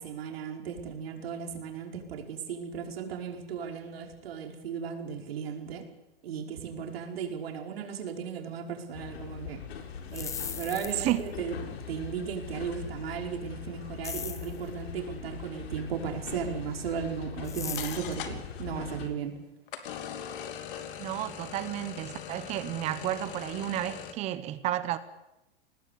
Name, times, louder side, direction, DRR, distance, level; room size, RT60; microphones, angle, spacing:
voice 1, 0.0-5.9 6.2-9.6 10.1-19.4, right 7 dB, 75° right, 3 dB, 5.2 m, -36 dB
sound 1, 8.9-19.1, left 7 dB, 85° left, 4.3 m, -41 dB
sound 2, 10.0-11.2 14.0-14.6 17.4-18.1, left 7 dB, 10° left, 0.7 m, -38 dB
sound 3, 17.8-18.6 19.7-24.1, left 9 dB, 60° left, 2.9 m, -41 dB
voice 2, 21.0-25.0, right 13 dB, 20° right, 14 dB, 1.0 m, -32 dB
22.5 x 19.0 x 8.5 m, 0.92 s
supercardioid pair, 165°, 30 cm